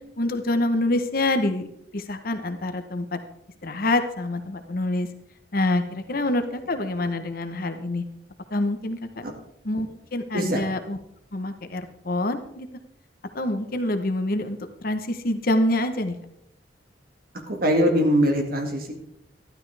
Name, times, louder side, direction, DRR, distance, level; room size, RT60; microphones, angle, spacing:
voice 1, 0.2-3.2 3.6-5.1 5.5-8.1 8.5-9.2 9.6-11.0 11.3-12.7 13.3-16.2, left 1 dB, 55° left, 8 dB, 1.0 m, -26 dB
voice 2, 17.5-18.9, equal, 55° right, 3 dB, 2.0 m, -22 dB
12.5 x 11.5 x 3.4 m, 0.76 s
head